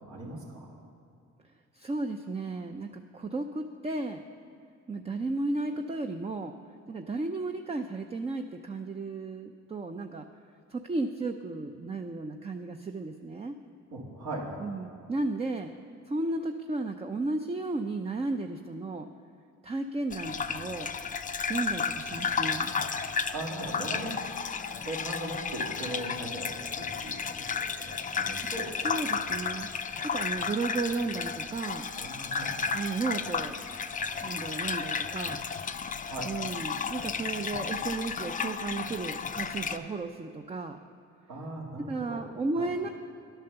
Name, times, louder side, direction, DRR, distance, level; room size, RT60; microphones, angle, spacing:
voice 1, 0.1-0.7 13.9-14.6 23.0-23.1 23.3-24.2 24.8-28.7 29.0-29.1 31.9-32.7 36.0-36.3 41.3-42.2 42.5-42.7, right 1 dB, 70° right, -6 dB, 2.7 m, -39 dB
voice 2, 1.7-4.2 4.9-6.5 6.9-10.2 10.7-13.5 14.6-15.7 16.1-19.1 19.6-20.9 21.5-22.7 28.8-29.7 30.1-31.9 32.7-33.5 34.2-35.4 36.2-40.8 41.9-42.9, right 3 dB, 20° right, 5 dB, 0.5 m, -34 dB
Gurgling / Bathtub (filling or washing), 20.1-39.8, left 5 dB, 25° left, 0.5 m, -33 dB
10.5 x 9.0 x 6.9 m, 2.6 s
cardioid pair, 90°, 30 cm